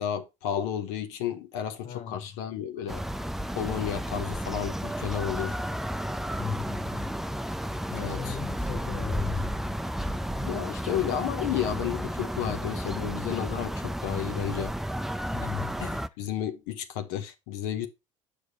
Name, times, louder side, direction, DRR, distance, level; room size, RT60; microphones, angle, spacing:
voice 1, 0.0-3.0 3.5-5.5 7.9-8.4 10.4-14.7 15.8-17.9, left 10 dB, 75° left, 1.0 m, -32 dB
voice 2, 1.8-2.3 6.4-7.1 7.9-9.5 15.3-15.8, left 8 dB, 45° left, 0.8 m, -36 dB
sound 1, 2.9-16.1, equal, ahead, 0.5 m, -32 dB
6.7 x 4.8 x 4.1 m
hypercardioid pair, 70°, 16 cm